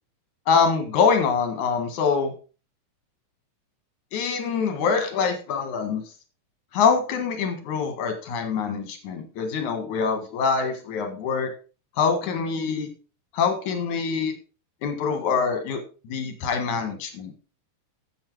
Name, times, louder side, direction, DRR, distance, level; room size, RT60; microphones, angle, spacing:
voice 1, 0.5-2.3 4.1-6.0 6.7-11.5 12.0-12.9 13.3-14.3 14.8-15.8 16.0-17.3, left 5 dB, 75° left, 7 dB, 3.2 m, -24 dB
10.5 x 7.8 x 4.7 m, 0.34 s
omnidirectional pair, 3.5 m